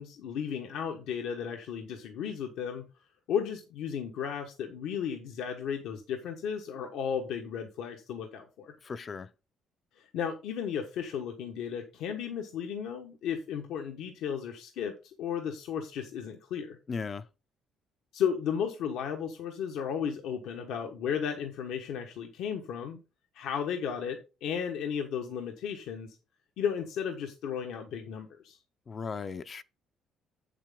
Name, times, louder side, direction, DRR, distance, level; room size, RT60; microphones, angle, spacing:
voice 1, 0.0-2.9 3.3-8.7 10.0-16.8 18.1-23.0 23.3-26.2 26.6-28.6, left 7 dB, 80° left, 1.2 m, -34 dB
voice 2, 8.8-9.3 16.9-17.3 28.9-29.6, left 5 dB, 30° left, 0.4 m, -37 dB
8.5 x 7.5 x 3.7 m
cardioid pair, 165°, 0 cm